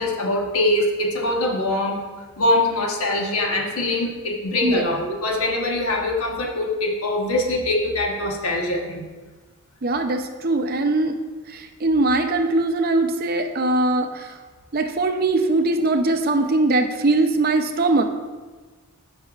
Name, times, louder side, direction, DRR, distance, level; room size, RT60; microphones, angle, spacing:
voice 1, 0.0-2.0 2.4-9.0, left 1 dB, 80° left, 0 dB, 1.2 m, -23 dB
voice 2, 9.8-11.1 11.5-14.3 14.7-18.0, right 2 dB, 45° right, 6 dB, 0.5 m, -21 dB
13.0 x 5.6 x 2.4 m, 1.3 s
head